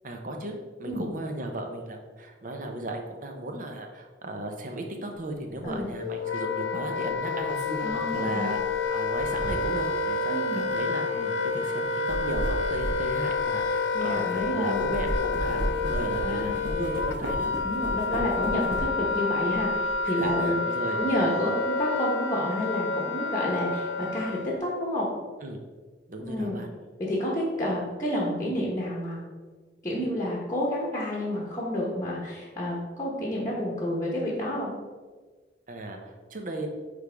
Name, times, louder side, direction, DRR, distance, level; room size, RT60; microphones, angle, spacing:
voice 1, 0.0-7.6 7.9-8.6 8.9-17.5 20.0-21.0 25.4-25.6 26.1-26.7 35.7-36.7, right 1 dB, 50° right, 3 dB, 0.8 m, -36 dB
sound 1, 5.6-5.8 7.1-9.9 10.6-10.8 11.8-14.4 14.7-19.1 19.5-20.3, equal, 80° right, 1.1 m, -35 dB
Wind instrument woodwind instrument, 5.7-24.6, left 3 dB, 85° left, 0.4 m, -29 dB
voice 2, 7.8-8.5 10.3-10.6 13.9-14.8 16.2-16.6 17.6-20.6 20.9-25.1 26.2-26.6 27.0-29.2 29.8-34.7, left 1 dB, 20° left, -5 dB, 1.1 m, -29 dB
8.8 x 3.4 x 3.5 m, 1.4 s
head